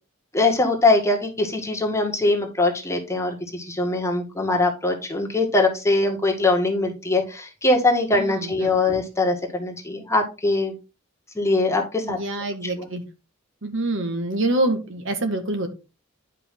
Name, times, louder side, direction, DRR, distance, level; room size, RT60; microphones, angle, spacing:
voice 1, 0.3-10.7 11.4-12.2 12.6-12.9, left 2 dB, 15° left, 1 dB, 1.8 m, -22 dB
voice 2, 8.1-8.7 12.0-13.0 13.6-15.7, right 2 dB, 65° right, 6 dB, 1.7 m, -26 dB
10.5 x 5.3 x 3.8 m, 0.29 s
head